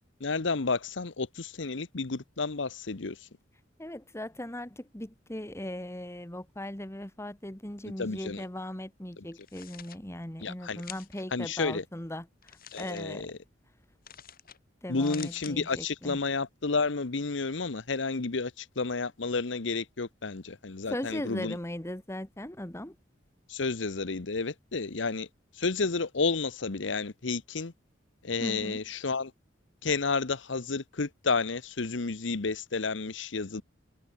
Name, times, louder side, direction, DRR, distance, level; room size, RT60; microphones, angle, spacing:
voice 1, 0.2-3.3 8.0-8.4 9.2-9.3 10.4-10.8 11.3-11.8 12.7-13.4 14.9-21.5 23.5-25.3 25.5-27.7 28.2-29.3 29.8-33.6, left 4 dB, 70° left, 1.0 m, -31 dB
voice 2, 3.8-12.3 12.8-13.3 14.8-16.2 20.9-23.0 28.4-28.8, left 1 dB, 15° left, 1.9 m, -38 dB
sound 1, 9.3-10.0 10.8-11.2 12.4-13.0 14.0-14.6 14.9-15.5, left 10 dB, 50° left, 7.8 m, -47 dB
head